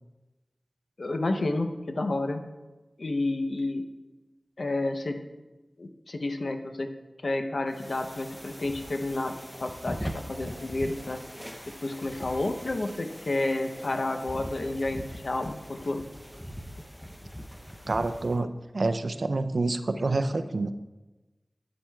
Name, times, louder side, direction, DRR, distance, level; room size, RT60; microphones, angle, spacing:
voice 1, 1.0-2.4 3.0-3.8 4.6-5.2 5.8-6.9 7.2-9.3 9.6-11.2 11.8-16.0, left 2 dB, 75° left, 6 dB, 0.7 m, -30 dB
sound 1, 7.7-18.4, equal, 5° left, 0.6 m, -41 dB
voice 2, 17.9-20.7, right 2 dB, 75° right, 11 dB, 0.4 m, -28 dB
10.0 x 7.4 x 2.3 m, 1.1 s
wide cardioid pair, 40°, 0 cm